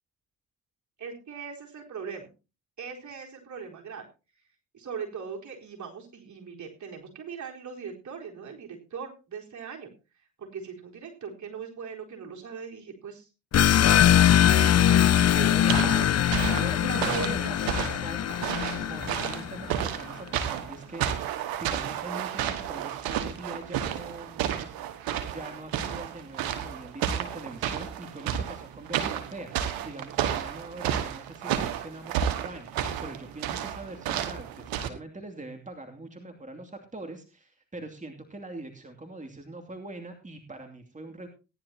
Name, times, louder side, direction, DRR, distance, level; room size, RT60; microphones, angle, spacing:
voice 1, 1.0-2.3 2.8-4.1 4.7-9.9 10.4-13.3 14.4-14.9 15.4-16.1 16.8-17.5, right 6 dB, 55° right, -1 dB, 4.3 m, -39 dB
sound 1, 13.5-19.8, left 10 dB, 45° left, 0.6 m, -22 dB
voice 2, 15.1-16.0 16.3-24.7 25.3-41.3, right 2 dB, 20° right, 4 dB, 2.7 m, -42 dB
sound 2, 15.7-34.9, right 9 dB, 85° right, 1.5 m, -32 dB
17.5 x 11.0 x 2.9 m, 0.30 s
hypercardioid pair, 45°, 34 cm